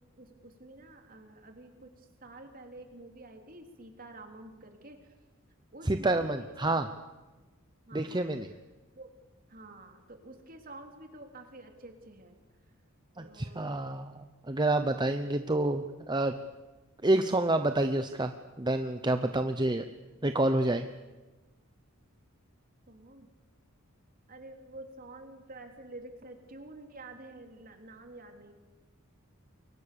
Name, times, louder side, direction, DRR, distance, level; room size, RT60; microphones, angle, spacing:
voice 1, 0.2-5.0 5.7-6.3 6.6-6.8 7.9-8.4 8.9-9.1 9.5-12.4 13.1-13.8 14.8-15.1 22.9-23.3 24.3-28.5, right 2 dB, 40° right, 4 dB, 3.5 m, -49 dB
voice 2, 5.8-6.9 7.9-8.5 13.2-16.3 17.0-18.3 18.6-19.8 20.2-20.9, right 2 dB, 20° right, 8 dB, 0.9 m, -28 dB
29.0 x 23.0 x 7.0 m, 1.2 s
head